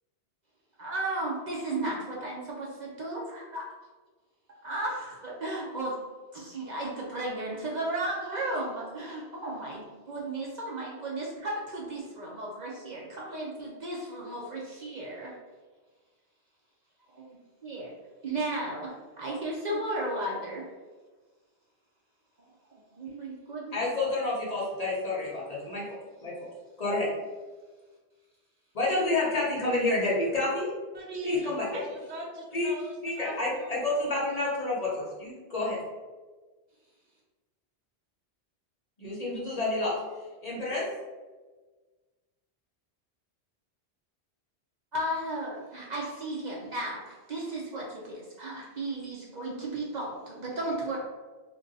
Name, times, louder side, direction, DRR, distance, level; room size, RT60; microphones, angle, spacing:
voice 1, 0.8-3.7 4.6-5.9 6.3-15.3 17.1-17.4 17.6-17.9 18.2-20.6 22.4-22.5 22.7-24.1 44.9-51.0, right 1 dB, 50° right, -4 dB, 0.6 m, -34 dB
voice 2, 23.7-26.5 26.8-27.1 28.7-30.7 31.2-31.8 32.5-32.7 33.0-35.8 39.0-39.9 40.4-40.9, left 2 dB, 40° left, -5 dB, 0.7 m, -29 dB
voice 3, 30.9-34.3, right 2 dB, 80° right, 1 dB, 0.9 m, -41 dB
2.5 x 2.2 x 3.9 m, 1.3 s
omnidirectional pair, 1.1 m